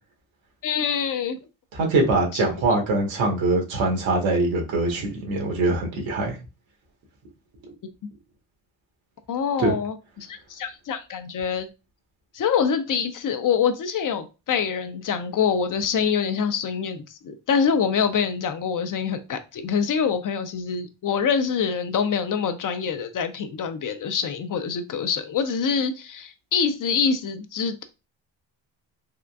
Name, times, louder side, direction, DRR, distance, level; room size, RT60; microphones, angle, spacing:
voice 1, 0.6-1.4 2.3-2.5 9.3-11.7 12.3-27.9, left 6 dB, 45° left, 0.5 m, -25 dB
voice 2, 1.7-6.4 9.6-9.7, right 2 dB, 85° right, 1.3 m, -23 dB
3.6 x 2.4 x 2.3 m
cardioid pair, 80°, 46 cm